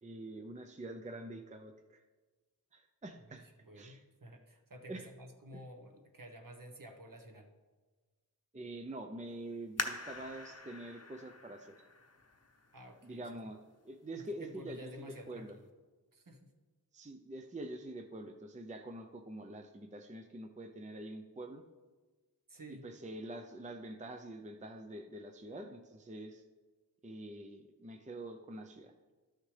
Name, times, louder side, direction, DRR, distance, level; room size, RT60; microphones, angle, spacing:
voice 1, 0.0-2.0 2.7-3.5 3.8-4.0 4.9-5.1 5.5-5.6 8.5-11.7 13.0-13.6 13.8-14.9 15.3-15.5 16.9-21.6 22.8-26.4 27.0-28.9, right 1 dB, 20° right, 5 dB, 0.6 m, -46 dB
voice 2, 3.3-7.5 12.7-13.3 14.2-15.4 16.1-16.5 22.5-22.9, equal, 55° right, 3 dB, 1.2 m, -51 dB
sound 1, 9.8-13.1 13.7-13.8 14.5-14.9 15.2-15.3, left 3 dB, 40° left, 0.9 m, -43 dB
12.5 x 6.5 x 3.3 m, 1.3 s
wide cardioid pair, 55°, 39 cm